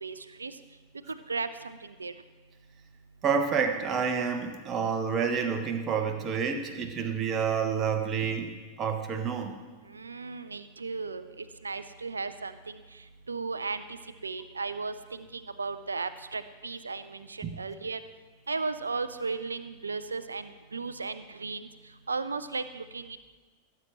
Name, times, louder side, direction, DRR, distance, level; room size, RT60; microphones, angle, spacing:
voice 1, 0.0-0.6 1.1-2.1 9.9-14.0 14.2-18.0 18.5-21.7 22.1-23.2, right 4 dB, 75° right, 12 dB, 0.5 m, -36 dB
voice 2, 3.2-8.5 8.8-9.5 17.4-17.6, right 6 dB, 25° right, 5 dB, 1.2 m, -29 dB
17.5 x 8.5 x 3.1 m, 1.3 s
figure-of-eight pair, 90°, 0 cm